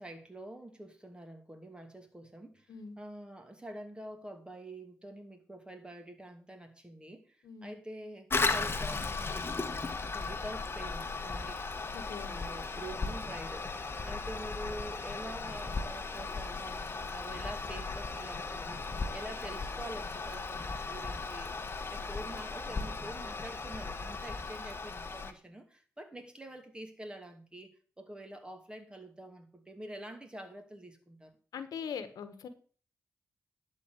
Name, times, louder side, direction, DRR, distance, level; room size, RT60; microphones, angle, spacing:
voice 1, 0.0-11.6 12.3-13.7 14.0-27.7 28.0-31.3, right 1 dB, 15° right, 6 dB, 2.5 m, -46 dB
voice 2, 7.4-7.7 11.9-12.3 31.5-32.5, left 6 dB, 85° left, 11 dB, 1.3 m, -41 dB
Toilet flush, 8.3-25.3, left 4 dB, 40° left, 1.3 m, -36 dB
11.5 x 4.5 x 8.0 m, 0.42 s
cardioid pair, 60°, 6 cm